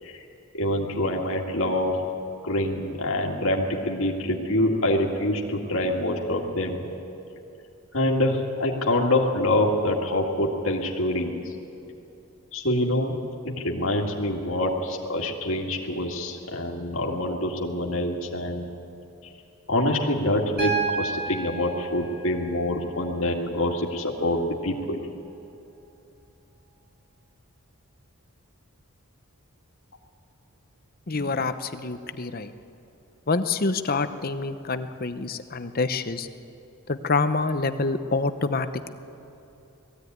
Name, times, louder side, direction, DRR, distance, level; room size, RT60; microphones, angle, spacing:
voice 1, 0.5-1.9 2.4-6.9 7.9-11.3 12.5-13.2 13.4-18.7 19.7-25.0, left 1 dB, 65° left, -1 dB, 2.1 m, -25 dB
Piano, 20.6-24.6 26.2-26.3, right 5 dB, 45° right, 3.0 m, -33 dB
voice 2, 31.1-32.5 33.3-36.3 36.9-38.9, left 3 dB, 40° left, 10 dB, 0.8 m, -27 dB
20.0 x 15.5 x 9.4 m, 2.8 s
head